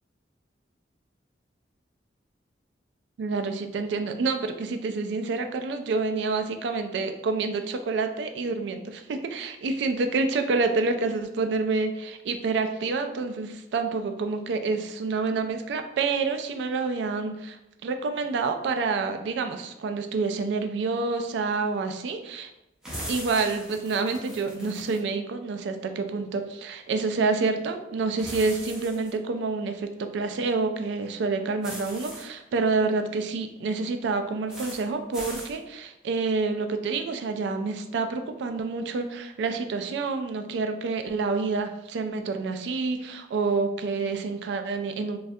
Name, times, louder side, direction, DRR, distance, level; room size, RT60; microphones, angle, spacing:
voice 1, 3.2-17.6 17.8-22.5 23.1-45.2, right 4 dB, 70° right, 7 dB, 0.3 m, -28 dB
sound 1, 22.8-25.0 28.2-29.1 31.6-32.2 34.5-34.8 35.1-35.5, equal, 5° right, 0.5 m, -39 dB
3.2 x 2.3 x 2.6 m, 0.88 s
head